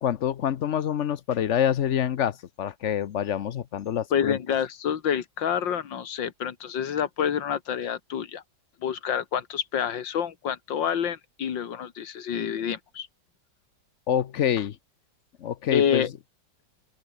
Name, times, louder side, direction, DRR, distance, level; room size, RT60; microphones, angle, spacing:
voice 1, 0.0-4.4 14.1-14.8 15.4-16.0, left 9 dB, 55° left, 0.8 m, -26 dB
voice 2, 4.1-8.4 8.8-13.1 15.7-16.1, left 8 dB, 90° left, 2.2 m, -28 dB
open air
omnidirectional pair, 2.0 m